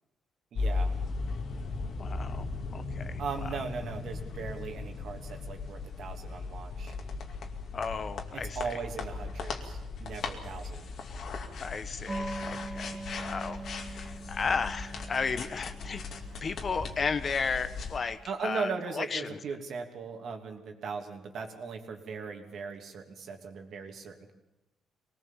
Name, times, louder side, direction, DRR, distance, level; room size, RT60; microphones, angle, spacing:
sound 1, 0.5-18.0, left 3 dB, 65° left, 2.4 m, -37 dB
voice 1, 0.5-1.0 3.2-6.9 8.3-10.9 18.2-24.3, right 5 dB, 65° right, 4 dB, 2.8 m, -38 dB
voice 2, 2.0-3.5 7.7-8.8 11.6-16.0 16.4-19.4, left 5 dB, 45° left, 12 dB, 1.1 m, -34 dB
sound 2, 12.1-18.3, right 2 dB, 20° right, 2.0 m, -42 dB
23.5 x 19.0 x 7.4 m, 0.96 s
cardioid pair, 90°, 0 cm